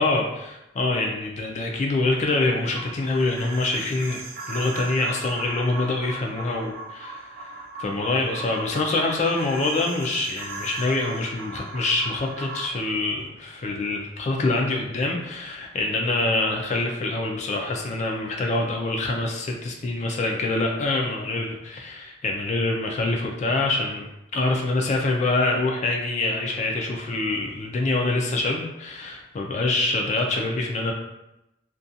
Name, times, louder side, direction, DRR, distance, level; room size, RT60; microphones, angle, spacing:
voice 1, 0.0-4.2 4.5-30.9, left 2 dB, 40° left, 0 dB, 0.3 m, -25 dB
sound 1, 2.7-12.7, right 2 dB, 55° right, 0.4 m, -38 dB
2.4 x 2.2 x 2.6 m, 0.90 s
head